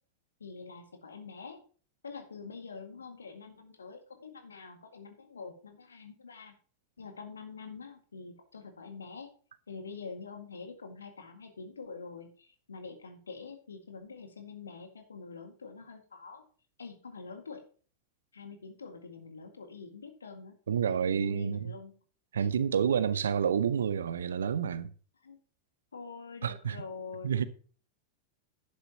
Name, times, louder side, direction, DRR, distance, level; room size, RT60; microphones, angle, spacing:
voice 1, 0.4-1.6 2.0-6.5 7.0-9.3 9.7-16.4 16.8-17.7 18.3-20.5 20.9-21.9 22.4-22.5 25.2-25.4 25.9-27.5, left 4 dB, 70° left, 1.9 m, -45 dB
voice 2, 20.7-21.7 22.3-24.9 26.4-26.8 27.2-27.5, right 7 dB, 65° right, 0.8 m, -29 dB
11.0 x 9.9 x 2.9 m
figure-of-eight pair, 90°, 0 cm